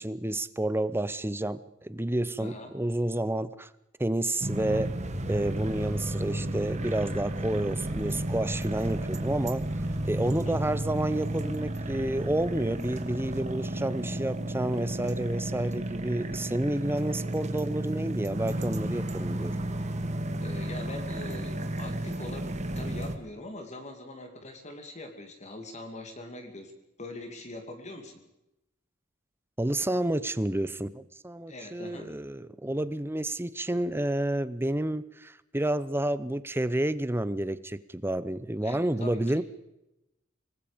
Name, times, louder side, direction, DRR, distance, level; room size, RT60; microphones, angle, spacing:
voice 1, 0.0-3.7 4.0-4.9 5.3-9.6 10.0-19.6 29.6-39.4, right 1 dB, 10° right, 15 dB, 0.8 m, -30 dB
voice 2, 2.4-2.8 10.3-10.6 20.4-26.7 27.0-28.2 31.5-32.1 38.6-39.2, left 2 dB, 35° left, 5 dB, 2.6 m, -42 dB
sound 1, 4.4-23.2, right 1 dB, 35° right, 1.8 m, -32 dB
sound 2, 5.5-13.5, right 1 dB, 75° right, 2.4 m, -49 dB
25.5 x 19.5 x 5.2 m, 0.92 s
head